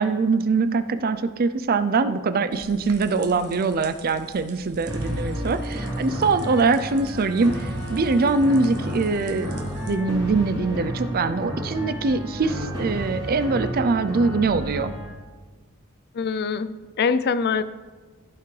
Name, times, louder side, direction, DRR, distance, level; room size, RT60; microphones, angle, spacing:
voice 1, 0.0-14.9, right 3 dB, 40° right, 11 dB, 0.4 m, -23 dB
sound 1, 2.5-10.0, right 4 dB, 80° right, 0.9 m, -46 dB
sound 2, 4.9-15.1, equal, 20° right, 3.1 m, -31 dB
voice 2, 16.1-17.6, left 5 dB, 45° left, 14 dB, 0.4 m, -24 dB
15.0 x 5.8 x 3.3 m, 1.4 s
head